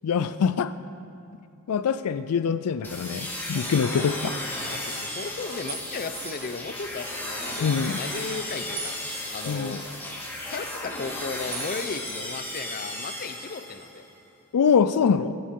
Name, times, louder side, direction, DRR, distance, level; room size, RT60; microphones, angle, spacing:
voice 1, 0.0-0.7 1.7-4.4 7.6-8.0 9.5-9.8 14.5-15.3, left 6 dB, 85° left, 13 dB, 0.4 m, -24 dB
sound 1, 2.8-14.0, left 1 dB, 10° left, 1.8 m, -35 dB
voice 2, 3.9-4.3 4.7-10.2 10.5-14.0, left 4 dB, 40° left, 10 dB, 0.6 m, -36 dB
sound 2, 5.7-6.7 8.8-9.8 11.5-11.8 12.1-13.0, right 7 dB, 70° right, 3.2 m, -41 dB
15.5 x 14.0 x 3.7 m, 2.6 s
head